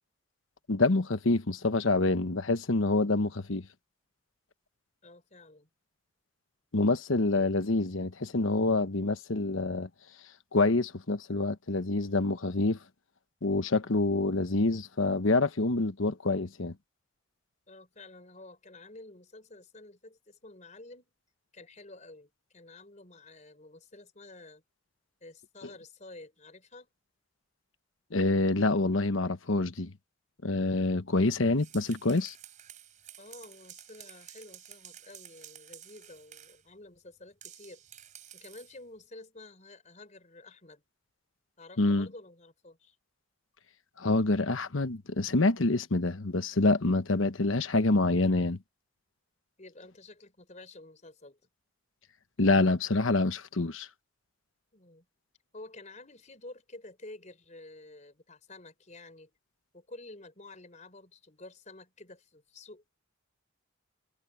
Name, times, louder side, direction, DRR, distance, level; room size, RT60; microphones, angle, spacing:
voice 1, 0.7-3.6 6.7-9.9 10.5-12.8 13.4-16.7 28.1-29.9 30.4-32.3 41.8-42.1 44.0-48.6 52.4-53.9, left 2 dB, 75° left, 1.1 m, -26 dB
voice 2, 5.0-5.7 17.7-21.1 21.5-24.6 25.2-26.9 33.2-37.8 38.3-40.8 41.6-43.0 49.6-51.4 54.7-55.1 55.5-59.3 59.7-62.9, left 2 dB, 35° left, 4.5 m, -50 dB
sound 1, 31.4-36.6 37.4-38.8, right 10 dB, 40° right, 4.7 m, -51 dB
head